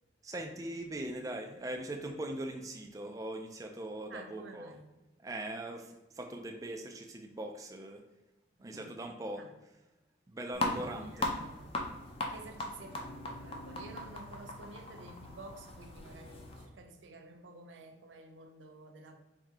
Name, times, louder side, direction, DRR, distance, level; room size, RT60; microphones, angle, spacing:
voice 1, 0.2-4.7 5.2-8.0 8.6-9.4 10.3-11.3, right 1 dB, 20° right, 0.3 m, -41 dB
voice 2, 4.1-4.9 8.6-8.9 9.4-9.5 10.5-11.8 12.0-19.2, right 2 dB, 85° right, 0.6 m, -51 dB
sound 1, 10.5-16.7, left 2 dB, 30° left, 0.6 m, -39 dB
4.7 x 2.7 x 3.6 m
head